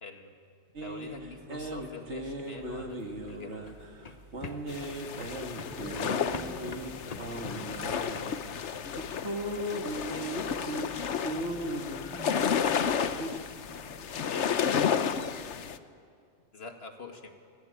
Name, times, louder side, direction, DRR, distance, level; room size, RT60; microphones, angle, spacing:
voice 1, 0.0-0.3 0.8-3.7 10.1-10.9 14.3-14.5 16.5-17.3, left 3 dB, 60° left, 4 dB, 2.3 m, -44 dB
sound 1, 0.8-13.3, right 1 dB, 70° right, 2.3 m, -38 dB
sound 2, 2.7-8.4, left 4 dB, 35° left, 0.9 m, -45 dB
sound 3, 4.7-15.8, left 7 dB, 75° left, 1.2 m, -32 dB
voice 2, 5.6-6.8 7.6-8.4 11.2-11.6 12.1-13.1 13.7-14.8, left 1 dB, 5° right, -3 dB, 7.8 m, -46 dB
26.0 x 19.0 x 8.8 m, 2.3 s
omnidirectional pair, 1.2 m